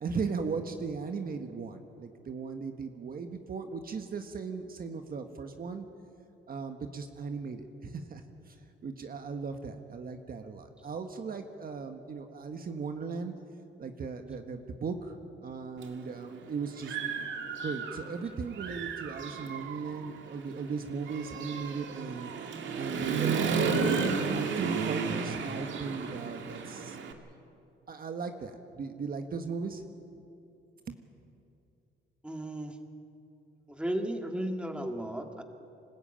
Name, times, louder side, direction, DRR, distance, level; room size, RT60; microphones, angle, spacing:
voice 1, 0.0-5.8 6.5-8.6 8.8-13.3 13.8-15.2 15.4-17.0 17.6-22.3 22.7-27.0 27.9-29.8 30.9-31.0, right 5 dB, 45° right, 6 dB, 1.4 m, -37 dB
Human voice / Motorcycle, 15.8-15.9 16.4-18.2 18.5-27.1, right 5 dB, 70° right, 2.0 m, -33 dB
voice 2, 32.2-32.8 33.7-35.4, right 1 dB, 5° right, 4 dB, 2.1 m, -34 dB
25.5 x 14.0 x 8.9 m, 2.7 s
cardioid pair, 90°, 20 cm